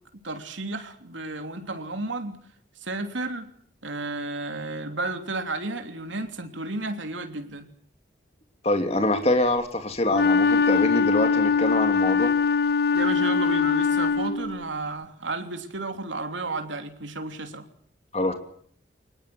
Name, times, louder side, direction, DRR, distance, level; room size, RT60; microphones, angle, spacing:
voice 1, 0.2-2.4 2.8-3.5 3.8-7.7 12.9-17.7, right 2 dB, 85° right, 7 dB, 3.2 m, -32 dB
voice 2, 8.6-12.3 18.1-18.3, left 1 dB, 35° left, 6 dB, 2.9 m, -24 dB
Wind instrument woodwind instrument, 10.1-14.6, left 5 dB, 55° left, 1.6 m, -22 dB
24.0 x 20.5 x 7.9 m, 0.63 s
head